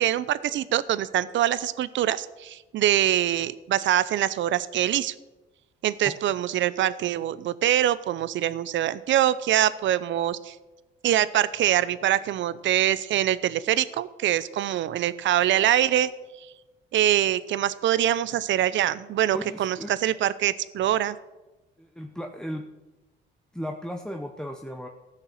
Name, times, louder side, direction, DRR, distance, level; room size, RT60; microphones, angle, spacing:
voice 1, 0.0-5.1 5.8-10.6 11.0-16.1 16.9-21.2, right 12 dB, 70° right, 17 dB, 0.7 m, -24 dB
voice 2, 19.3-19.9 21.8-22.7 23.5-24.9, equal, 5° left, 3 dB, 1.0 m, -35 dB
14.5 x 6.6 x 7.4 m, 1.1 s
cardioid pair, 90°, 20 cm